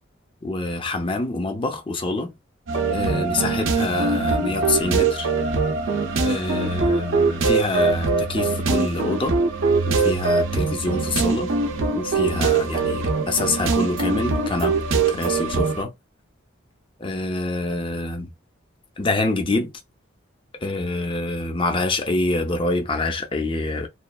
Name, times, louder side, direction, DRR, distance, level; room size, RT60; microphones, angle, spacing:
voice 1, 0.4-2.3 2.9-5.3 6.2-9.4 9.9-11.5 11.9-15.9 17.0-18.3 19.0-19.7 20.6-23.9, left 2 dB, 25° left, 0.4 m, -26 dB
sound 1, 2.7-15.8, right 4 dB, 75° right, 0.6 m, -22 dB
3.0 x 2.3 x 2.2 m
head